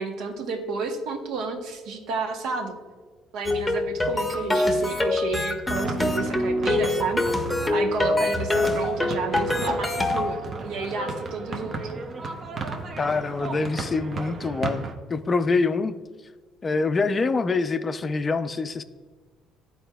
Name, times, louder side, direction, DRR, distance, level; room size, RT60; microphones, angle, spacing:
voice 1, 0.0-2.7 3.3-7.2 7.7-11.9, right 4 dB, 75° right, 4 dB, 0.9 m, -31 dB
sound 1, 3.4-10.3, left 2 dB, 10° left, 0.8 m, -25 dB
sound 2, 5.7-14.9, right 3 dB, 40° right, 0.7 m, -35 dB
voice 2, 13.0-14.8 15.1-15.9 16.6-18.8, left 4 dB, 30° left, 9 dB, 0.4 m, -25 dB
12.5 x 4.3 x 2.3 m, 1.4 s
cardioid pair, 110°, 0 cm